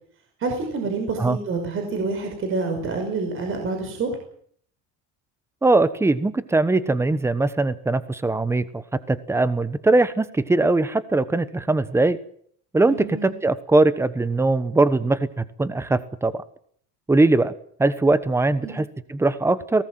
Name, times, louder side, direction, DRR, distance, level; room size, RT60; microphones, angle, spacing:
voice 1, 0.4-4.1 12.9-13.3 18.6-18.8, right 3 dB, 40° right, 4 dB, 5.7 m, -27 dB
voice 2, 5.6-8.8 9.1-12.2 12.7-16.4 17.1-17.5 17.8-19.8, right 2 dB, 10° right, 14 dB, 1.1 m, -21 dB
26.0 x 18.5 x 7.7 m, 0.63 s
cardioid pair, 160°, 33 cm